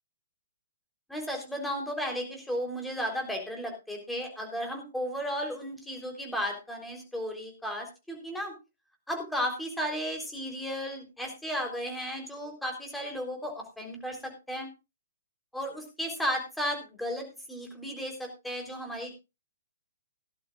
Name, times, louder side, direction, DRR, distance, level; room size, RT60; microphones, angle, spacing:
voice 1, 1.1-8.5 9.1-14.7 15.5-19.1, equal, 5° left, 2 dB, 3.8 m, -34 dB
17.5 x 11.5 x 2.5 m, 0.28 s
figure-of-eight pair, 125°, 0 cm